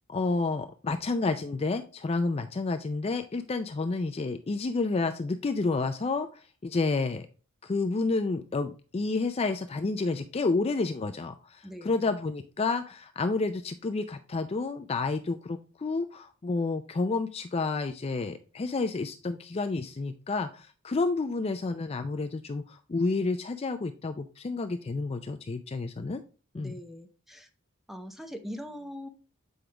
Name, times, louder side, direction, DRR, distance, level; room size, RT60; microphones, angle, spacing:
voice 1, 0.1-7.3 7.6-26.2 26.5-26.7, left 3 dB, 30° left, 8 dB, 0.4 m, -30 dB
voice 2, 11.6-12.1 26.5-27.5 27.9-29.1, equal, ahead, 6 dB, 0.7 m, -41 dB
7.8 x 5.0 x 3.3 m, 0.36 s
head